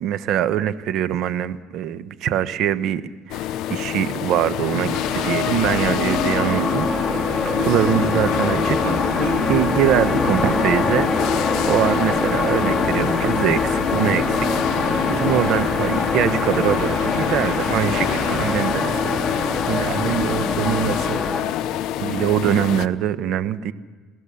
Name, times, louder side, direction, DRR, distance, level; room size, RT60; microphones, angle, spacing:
voice 1, 0.0-6.9 7.4-8.8 9.5-11.1 11.7-14.5 15.1-21.2 22.0-23.7, right 10 dB, 60° right, 14 dB, 1.0 m, -23 dB
sound 1, 3.3-22.9, left 12 dB, 65° left, 0.7 m, -27 dB
sound 2, 4.2-21.4, left 3 dB, 15° left, 3.5 m, -24 dB
sound 3, 4.6-18.5, right 3 dB, 75° right, 7.4 m, -35 dB
27.0 x 17.0 x 7.0 m, 1.4 s
cardioid pair, 120°, 0 cm